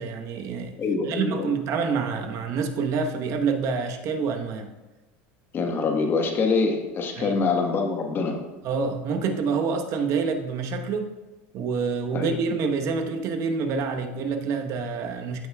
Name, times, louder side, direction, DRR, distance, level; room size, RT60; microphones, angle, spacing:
voice 1, 0.0-0.8 1.0-4.7 7.2-7.4 8.6-11.1 11.5-15.5, right 5 dB, 55° right, 5 dB, 1.1 m, -27 dB
voice 2, 0.8-1.5 5.5-8.4 12.1-12.3, left 4 dB, 35° left, 3 dB, 1.3 m, -25 dB
15.5 x 5.6 x 2.3 m, 1.1 s
supercardioid pair, 110°, 6 cm